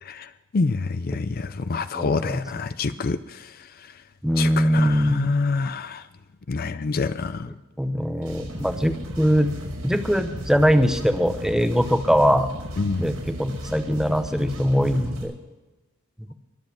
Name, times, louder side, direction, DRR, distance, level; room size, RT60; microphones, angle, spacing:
voice 1, 0.0-3.9 4.4-6.1 6.5-7.5 12.8-13.0, left 4 dB, 40° left, 12 dB, 0.5 m, -27 dB
voice 2, 1.9-2.4 4.2-5.3 7.8-9.5 9.8-12.5 13.0-15.3, equal, ahead, 8 dB, 0.8 m, -21 dB
sound 1, 8.2-15.2, equal, 90° right, 5.7 m, -35 dB
22.5 x 7.7 x 6.1 m, 1.1 s
head